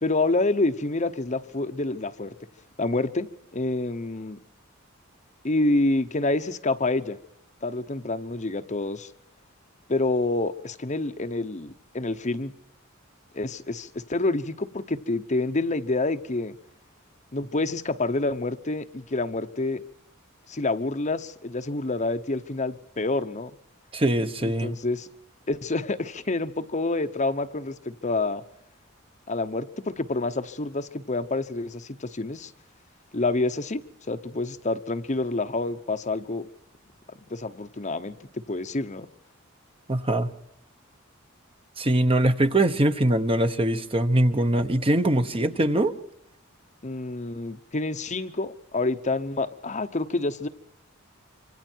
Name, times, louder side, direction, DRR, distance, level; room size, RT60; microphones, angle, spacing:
voice 1, 0.0-2.3 2.8-4.4 5.4-7.2 7.6-9.1 9.9-12.5 13.3-16.5 17.3-19.8 20.5-23.5 24.4-25.1 25.5-28.4 29.3-32.5 33.1-36.5 37.2-39.1 46.8-50.5, left 2 dB, 35° left, 0.9 m, -28 dB
voice 2, 23.9-24.8 39.9-40.3 41.8-45.9, right 1 dB, 25° right, 1.1 m, -22 dB
25.5 x 25.5 x 4.6 m
head